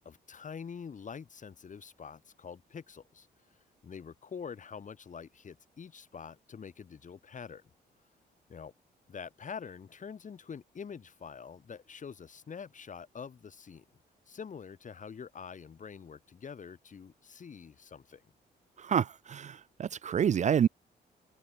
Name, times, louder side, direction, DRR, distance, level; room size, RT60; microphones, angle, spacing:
voice 1, 0.0-3.3 3.8-7.6 8.5-8.7 9.1-13.8 14.3-18.2, left 6 dB, 45° left, 5.9 m, -45 dB
voice 2, 18.8-20.7, right 8 dB, 45° right, 0.5 m, -28 dB
cardioid pair, 100°, 18 cm